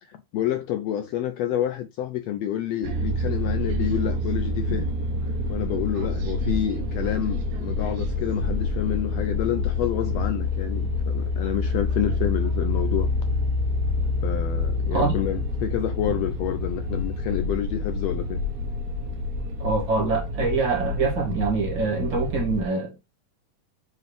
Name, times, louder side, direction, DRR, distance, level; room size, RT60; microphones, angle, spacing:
voice 1, 0.0-4.9 5.5-13.1 14.2-18.4, left 11 dB, 75° left, 1.5 m, -29 dB
sound 1, 2.8-22.7, left 2 dB, 85° right, 2.7 m, -27 dB
voice 2, 19.6-22.9, right 4 dB, 40° right, 2.4 m, -25 dB
6.9 x 4.7 x 3.1 m
omnidirectional pair, 3.4 m